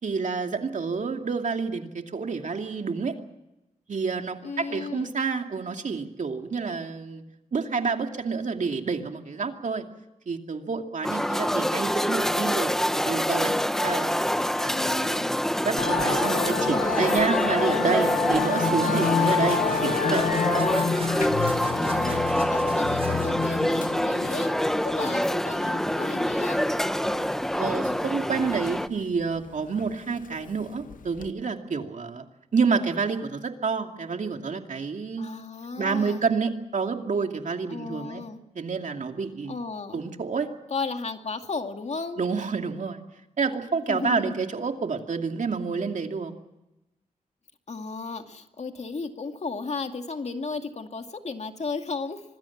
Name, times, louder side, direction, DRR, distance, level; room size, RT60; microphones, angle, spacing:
voice 1, 0.0-3.1 3.9-7.2 7.5-9.8 10.3-15.0 15.6-20.3 27.6-32.2 32.5-35.3 35.8-38.2 38.5-39.5 39.9-40.5 42.2-43.0 43.4-46.3, right 5 dB, 65° right, 4 dB, 2.5 m, -29 dB
voice 2, 4.4-5.1 14.7-15.4 21.7-24.6 24.9-26.6 35.2-36.2 37.7-38.4 39.5-40.0 40.7-42.2 43.9-44.4 47.7-52.2, left 4 dB, 55° left, 5 dB, 2.4 m, -34 dB
sound 1, 11.0-28.9, equal, 5° left, 0.8 m, -26 dB
Musical instrument, 15.8-31.3, left 6 dB, 90° left, 0.9 m, -30 dB
sound 2, 18.3-24.0, right 3 dB, 45° right, 4.9 m, -42 dB
25.5 x 20.5 x 7.3 m, 0.96 s
wide cardioid pair, 80°, 14 cm